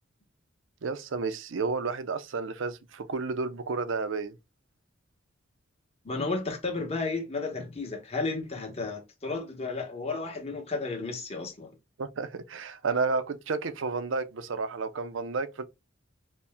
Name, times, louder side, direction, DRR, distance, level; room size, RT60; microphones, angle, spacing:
voice 1, 0.8-4.4 12.0-15.6, right 4 dB, 70° right, 0.5 m, -31 dB
voice 2, 6.0-11.7, left 3 dB, 30° left, 1.0 m, -33 dB
4.3 x 2.2 x 3.4 m
head